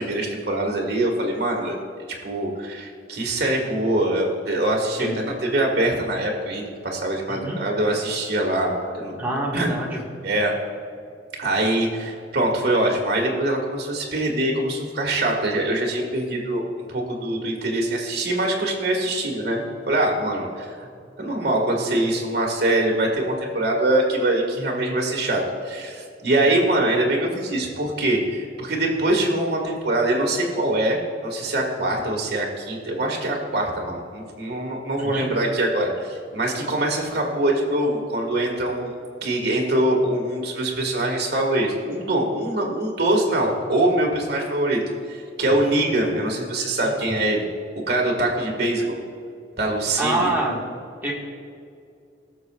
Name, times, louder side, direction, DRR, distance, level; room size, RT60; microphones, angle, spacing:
voice 1, 0.0-1.8 2.2-9.1 9.5-9.7 10.2-10.5 11.4-19.6 19.9-20.9 21.2-38.9 39.2-44.8 45.1-47.5 47.9-49.0 49.6-50.3, right 1 dB, 60° right, 0 dB, 1.7 m, -23 dB
voice 2, 7.3-7.6 9.2-10.0 35.0-35.3 45.6-45.7 46.8-47.2 50.0-50.6 51.0-51.1, right 1 dB, 10° right, -4 dB, 1.6 m, -26 dB
20.0 x 6.7 x 2.4 m, 2.4 s
head